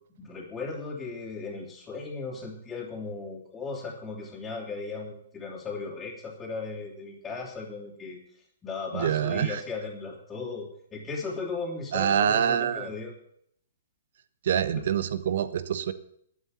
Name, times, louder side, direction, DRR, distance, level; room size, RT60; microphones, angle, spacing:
voice 1, 0.2-13.1 14.7-14.8, left 4 dB, 15° left, -7 dB, 3.5 m, -37 dB
voice 2, 8.9-9.6 11.9-12.9 14.4-15.9, right 8 dB, 60° right, 13 dB, 1.2 m, -25 dB
12.5 x 7.8 x 8.6 m, 0.69 s
hypercardioid pair, 125°, 0 cm